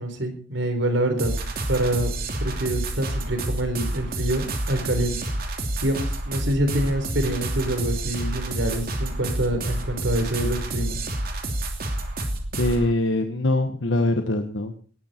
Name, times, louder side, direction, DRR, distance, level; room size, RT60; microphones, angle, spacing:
voice 1, 0.0-1.3 1.7-2.1 2.4-5.2 5.8-11.0, right 1 dB, 80° right, 7 dB, 4.3 m, -26 dB
sound 1, 1.2-12.9, right 1 dB, 55° right, 3.0 m, -29 dB
voice 2, 12.6-14.7, left 2 dB, 90° left, 6 dB, 1.4 m, -23 dB
19.0 x 12.5 x 4.5 m, 0.42 s
head